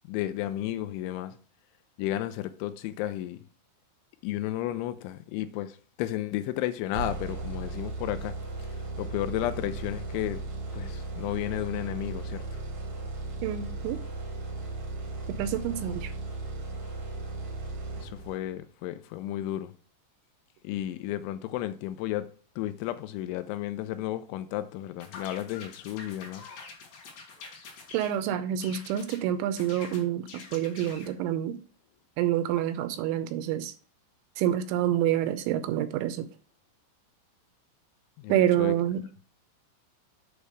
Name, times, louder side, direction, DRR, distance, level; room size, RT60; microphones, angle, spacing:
voice 1, 0.1-1.3 2.0-3.4 4.2-8.3 9.0-10.4 10.7-12.4 15.7-15.9 18.0-19.7 20.6-22.3 22.6-26.4 38.2-38.7, left 13 dB, 85° left, 2.9 m, -33 dB
sound 1, 6.9-18.6, right 3 dB, 65° right, 1.3 m, -36 dB
voice 2, 13.4-14.0 15.4-16.1 27.9-31.6 32.2-33.7 34.4-36.3 38.3-39.0, right 11 dB, 85° right, 2.8 m, -27 dB
sound 2, 25.0-28.2 28.6-29.2 29.6-31.1, left 4 dB, 60° left, 2.7 m, -46 dB
8.1 x 3.2 x 6.3 m
omnidirectional pair, 5.5 m